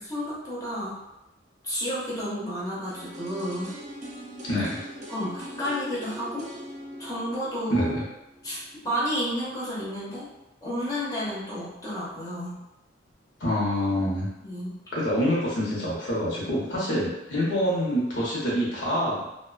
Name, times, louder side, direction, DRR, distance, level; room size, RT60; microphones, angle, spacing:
voice 1, 0.1-1.0 1.6-3.7 5.1-6.5 7.0-7.9 8.4-10.3 10.6-12.6 14.4-14.8, equal, 20° left, -8 dB, 0.6 m, -31 dB
sound 1, 2.9-8.8 9.1-9.2, equal, 40° right, 0.4 m, -42 dB
voice 2, 4.4-4.8 7.7-8.0 13.4-14.3 14.9-19.2, equal, 75° left, -6 dB, 0.8 m, -26 dB
2.4 x 2.1 x 2.4 m, 0.94 s
head